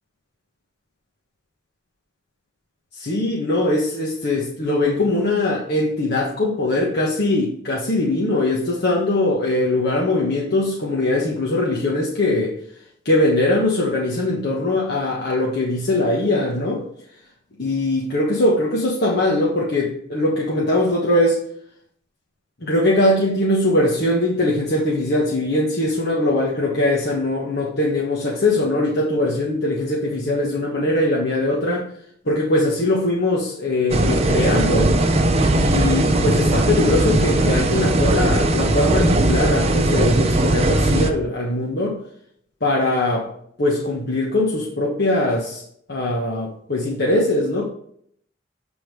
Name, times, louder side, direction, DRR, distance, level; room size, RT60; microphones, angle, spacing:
voice 1, 2.9-12.5 13.0-16.8 17.6-21.4 22.6-31.9 32.2-34.9 35.5-42.0 42.6-43.3 43.6-45.6 45.9-47.7, left 2 dB, 60° left, -3 dB, 1.3 m, -21 dB
sound 1, 33.9-41.1, right 2 dB, 35° right, 0.7 m, -18 dB
8.4 x 3.6 x 4.7 m, 0.65 s
head